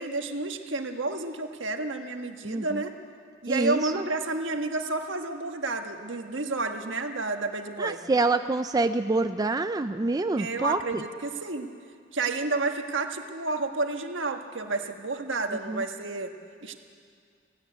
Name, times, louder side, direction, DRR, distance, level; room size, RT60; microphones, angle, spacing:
voice 1, 0.0-2.9 3.4-8.0 10.4-11.7 12.1-16.3 16.6-16.7, right 3 dB, 75° right, 5 dB, 1.5 m, -30 dB
voice 2, 2.4-2.8 3.5-4.1 7.8-11.0 15.7-15.9, right 3 dB, 20° right, 9 dB, 0.4 m, -27 dB
17.0 x 16.0 x 9.5 m, 2.2 s
head